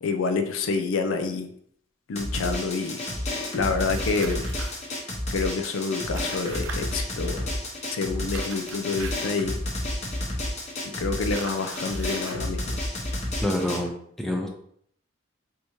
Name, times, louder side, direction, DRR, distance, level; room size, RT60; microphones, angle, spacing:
voice 1, 0.0-1.5 2.1-3.0 3.5-4.5 5.3-7.5 7.9-9.6 11.0-12.8, left 4 dB, 85° left, 7 dB, 0.4 m, -28 dB
Drum, 2.1-13.8, left 1 dB, 35° left, 0.8 m, -31 dB
sound 1, 3.8-4.8 6.1-6.8 8.3-9.4 11.3-12.4, right 4 dB, 80° right, 0.5 m, -40 dB
voice 2, 13.4-14.5, left 1 dB, ahead, 1 dB, 0.5 m, -27 dB
3.4 x 2.7 x 3.0 m, 0.67 s
head